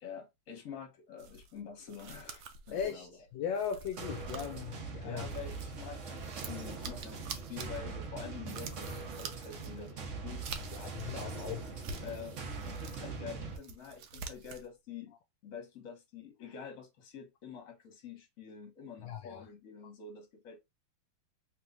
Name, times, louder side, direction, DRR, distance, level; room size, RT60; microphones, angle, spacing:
voice 1, 0.0-3.2 5.0-10.5 12.0-12.4 12.7-15.1 15.4-20.6, left 6 dB, 50° left, 1.4 m, -47 dB
sound 1, 1.2-5.8 6.1-11.2 11.6-13.1 13.4-14.7, right 5 dB, 75° right, 1.3 m, -47 dB
voice 2, 2.7-5.3 6.8-6.9 10.7-12.2 19.0-19.4, left 7 dB, 75° left, 1.2 m, -39 dB
sound 2, 4.0-13.6, right 4 dB, 50° right, 1.0 m, -42 dB
3.5 x 3.0 x 2.5 m
omnidirectional pair, 2.2 m